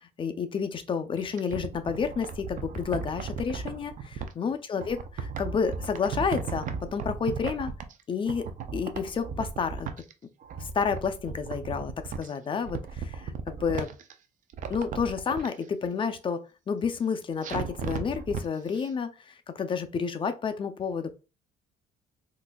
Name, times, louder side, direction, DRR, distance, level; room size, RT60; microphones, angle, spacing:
voice 1, 0.0-7.7 8.1-8.5 8.7-9.9 10.6-13.9 14.7-21.1, left 6 dB, 30° left, 9 dB, 0.4 m, -30 dB
sound 1, 1.2-4.3 4.8-8.0 8.3-10.1 10.4-12.3 12.6-14.1 14.5-15.5 17.4-18.4 18.8-18.9, right 6 dB, 50° right, 0.5 m, -36 dB
3.8 x 2.5 x 2.2 m, 0.31 s
cardioid pair, 110°, 17 cm